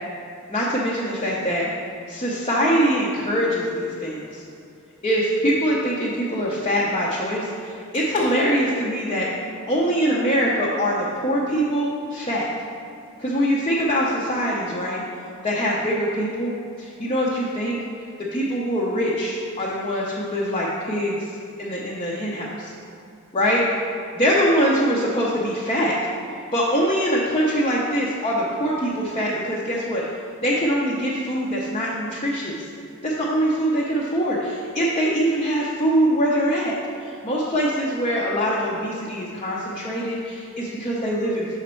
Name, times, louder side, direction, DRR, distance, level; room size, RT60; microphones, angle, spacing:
voice 1, 0.5-1.7 2.1-4.4 5.0-9.3 9.7-12.5 13.2-15.0 15.4-17.8 18.3-21.3 21.6-22.7 23.3-23.6 24.1-26.0 26.5-30.0 30.4-32.7 33.0-36.7 37.0-41.6, equal, 25° left, -6 dB, 0.6 m, -23 dB
6.5 x 5.1 x 4.4 m, 2.5 s
head